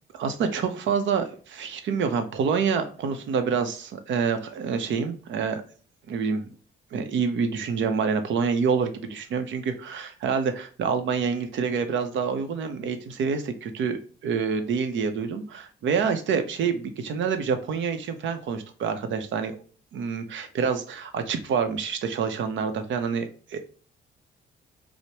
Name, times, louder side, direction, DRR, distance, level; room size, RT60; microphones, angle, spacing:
voice 1, 0.1-5.6 6.1-6.4 6.9-19.5 19.9-23.6, right 6 dB, 70° right, 8 dB, 0.7 m, -27 dB
4.5 x 2.1 x 2.8 m, 0.41 s
cardioid pair, 90°, 20 cm